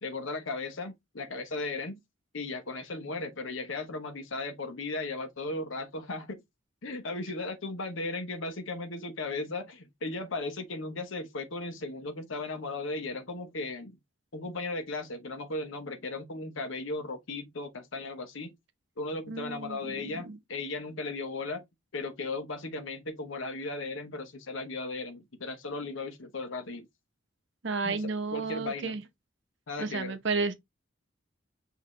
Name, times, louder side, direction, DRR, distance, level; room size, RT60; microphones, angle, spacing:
voice 1, 0.0-2.0 2.3-6.4 6.8-14.0 14.3-18.5 19.0-21.6 21.9-26.9 27.8-29.0 29.7-30.2, left 3 dB, 70° left, 0.9 m, -36 dB
voice 2, 19.3-20.4 27.6-29.0 29.8-30.5, right 4 dB, 60° right, 0.7 m, -32 dB
5.9 x 2.7 x 3.1 m
head